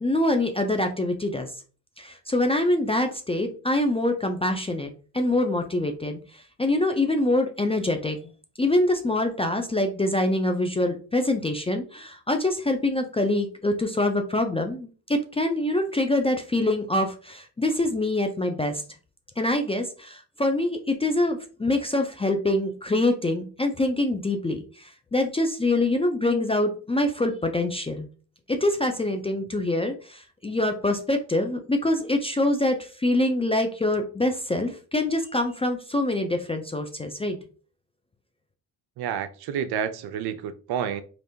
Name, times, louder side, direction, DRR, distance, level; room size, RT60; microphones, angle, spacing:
voice 1, 0.0-1.5 2.0-6.2 6.6-8.2 8.6-18.8 19.4-28.1 28.5-37.4, left 1 dB, 15° left, 0.4 m, -25 dB
voice 2, 39.0-41.0, right 8 dB, 55° right, 0.5 m, -29 dB
3.3 x 2.5 x 2.7 m
hypercardioid pair, 50°, 49 cm